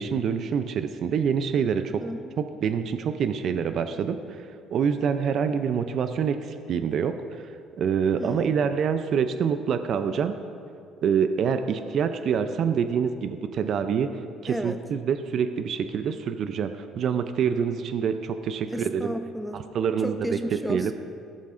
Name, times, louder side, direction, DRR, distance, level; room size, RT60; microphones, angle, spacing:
voice 1, 0.0-2.0 2.4-7.5 7.8-10.3 11.0-14.1 14.4-19.1 19.5-20.4 20.7-20.9, right 7 dB, 60° right, 9 dB, 0.5 m, -26 dB
voice 2, 2.0-2.4 8.2-8.6 14.5-14.8 18.7-19.6 20.0-20.9, equal, ahead, 7 dB, 0.6 m, -33 dB
16.0 x 7.4 x 2.6 m, 2.4 s
supercardioid pair, 90°, 0 cm